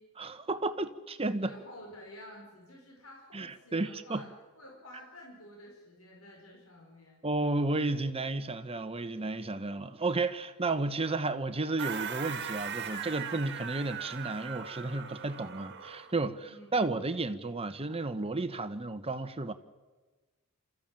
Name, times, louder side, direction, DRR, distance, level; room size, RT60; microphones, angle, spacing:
voice 1, 0.2-1.5 3.3-4.3 7.2-19.5, right 2 dB, 25° right, 1.1 m, -32 dB
voice 2, 1.4-7.2 16.5-16.8, left 1 dB, 70° left, 5.2 m, -51 dB
sound 1, 11.8-16.2, right 7 dB, 55° right, 1.8 m, -39 dB
27.0 x 14.5 x 9.0 m
head